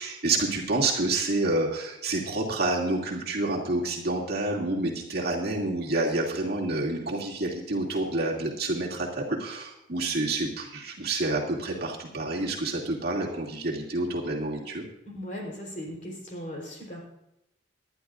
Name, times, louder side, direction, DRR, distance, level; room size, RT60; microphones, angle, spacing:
voice 1, 0.0-14.8, right 2 dB, 50° right, -2 dB, 2.6 m, -28 dB
voice 2, 15.1-17.0, equal, 40° left, 0 dB, 3.7 m, -38 dB
20.5 x 12.0 x 2.5 m, 0.84 s
head